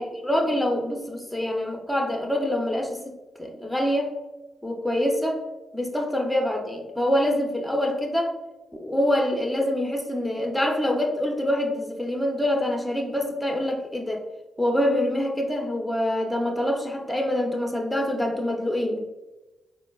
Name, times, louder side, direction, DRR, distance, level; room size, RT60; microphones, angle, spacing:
voice 1, 0.0-3.1 3.4-4.1 4.6-5.4 5.7-8.3 8.7-14.2 14.6-19.0, left 1 dB, 5° left, 1 dB, 0.7 m, -25 dB
4.0 x 2.0 x 2.3 m, 1.1 s
supercardioid pair, 45°, 0 cm